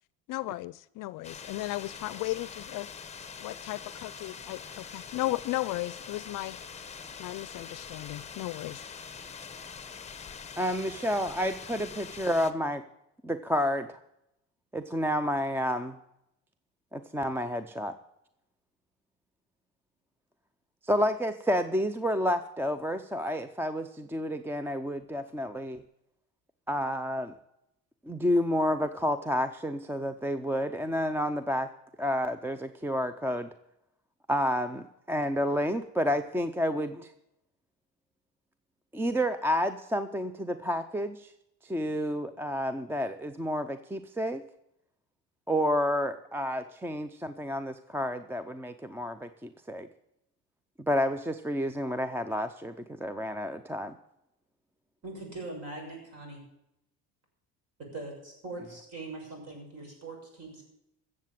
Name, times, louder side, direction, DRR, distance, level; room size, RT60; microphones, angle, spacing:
voice 1, 0.3-2.9 3.4-6.6 7.2-8.8, left 18 dB, 60° left, 19 dB, 0.5 m, -35 dB
sound 1, 1.2-12.5, left 6 dB, 20° left, 1.0 m, -44 dB
voice 2, 10.6-12.8 13.2-14.0 14.7-16.0 16.9-17.9 20.8-25.8 26.7-27.3 28.1-31.7 32.0-33.5 34.3-37.1 38.9-41.3 41.6-44.4 45.5-49.9 50.9-54.0, equal, 5° right, 11 dB, 0.5 m, -30 dB
voice 3, 55.0-56.4 57.9-60.6, right 2 dB, 45° right, 1 dB, 6.7 m, -41 dB
14.5 x 7.5 x 7.6 m, 0.82 s
cardioid pair, 115°, 36 cm